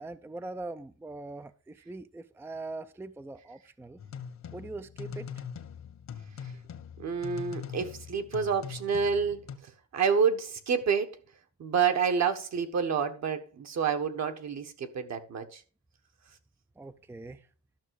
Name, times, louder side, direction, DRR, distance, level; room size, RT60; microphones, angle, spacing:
voice 1, 0.0-4.0 4.5-5.3 16.8-17.5, right 2 dB, 10° right, 0.4 m, -42 dB
sound 1, 4.0-9.6, left 7 dB, 60° left, 1.3 m, -42 dB
voice 2, 7.0-11.2 11.6-15.6, right 6 dB, 60° right, 1.5 m, -29 dB
12.0 x 6.2 x 4.7 m
cardioid pair, 135°, 30 cm